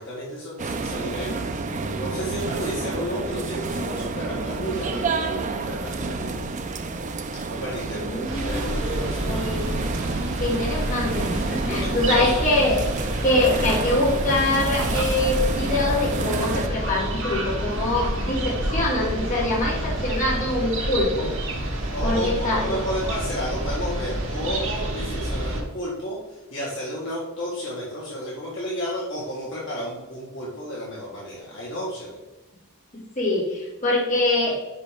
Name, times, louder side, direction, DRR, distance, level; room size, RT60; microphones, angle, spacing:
voice 1, 0.0-1.4 1.8-6.3 7.5-9.7 11.8-12.4 21.9-32.2, equal, 60° left, -6 dB, 1.7 m, -32 dB
sound 1, 0.6-16.7, right 3 dB, 35° right, 0.5 m, -29 dB
voice 2, 7.9-9.7 10.1-12.9 13.2-21.3 22.0-22.7 32.9-34.6, left 2 dB, 35° left, -6 dB, 2.6 m, -24 dB
sound 2, 8.2-25.6, right 1 dB, 65° right, 1.5 m, -28 dB
5.5 x 5.3 x 5.1 m, 1.1 s
head